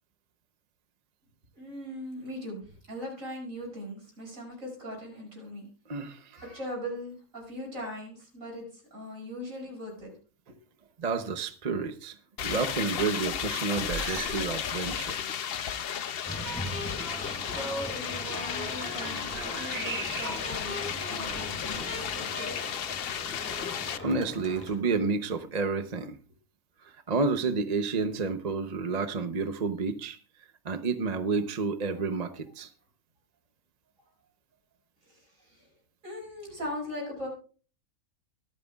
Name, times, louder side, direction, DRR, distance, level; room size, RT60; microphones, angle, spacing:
voice 1, 1.5-5.7 6.3-10.1 10.5-10.6 16.1-16.6 17.4-22.7 22.9-23.0 35.0-35.7 36.0-37.3, equal, 60° right, 0 dB, 6.4 m, -40 dB
voice 2, 5.9-6.4 11.0-12.2 12.4-15.1 24.0-26.2 27.1-30.2 30.6-32.7, right 4 dB, 35° right, 9 dB, 0.7 m, -30 dB
sound 1, 12.4-24.0, left 8 dB, 55° left, 0.7 m, -34 dB
sound 2, 13.9-14.5 14.8-15.1 15.8-15.9 18.3-20.6 21.2-22.2, right 5 dB, 90° right, 2.2 m, -41 dB
sound 3, 16.2-24.8, left 1 dB, 10° left, 4.0 m, -39 dB
24.0 x 9.2 x 2.4 m, 0.39 s
omnidirectional pair, 1.5 m